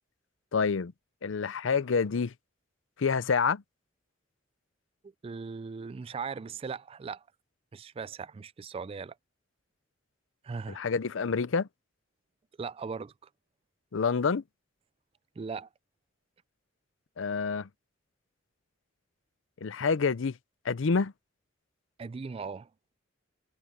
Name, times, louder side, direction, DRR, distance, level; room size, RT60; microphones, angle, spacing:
voice 1, 0.5-0.9 1.2-2.3 3.0-3.6 10.7-11.7 13.9-14.4 17.2-17.7 19.6-20.4 20.6-21.1, left 5 dB, 75° left, 0.5 m, -27 dB
voice 2, 5.2-7.2 7.7-9.1 10.4-10.8 12.6-13.1 15.4-15.7 22.0-22.7, right 5 dB, 30° right, 0.3 m, -38 dB
head